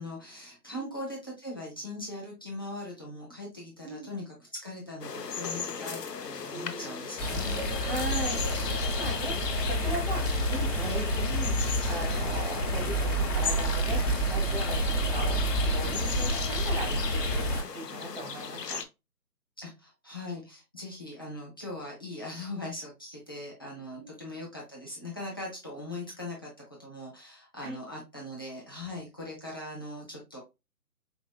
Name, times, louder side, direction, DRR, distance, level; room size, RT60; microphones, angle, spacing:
voice 1, 0.0-8.4 19.6-26.5 26.8-30.4, left 1 dB, 15° left, -3 dB, 0.6 m, -40 dB
sound 1, 5.0-18.9, left 6 dB, 85° left, 0.7 m, -37 dB
voice 2, 6.5-7.0 7.8-8.4 8.7-14.0 14.3-18.8 24.0-24.1 27.6-27.8, right 2 dB, 35° right, 2 dB, 1.0 m, -38 dB
sound 2, 7.2-17.6, equal, 40° left, 1.4 m, -29 dB
4.8 x 2.9 x 2.2 m, 0.24 s
figure-of-eight pair, 150°, 47 cm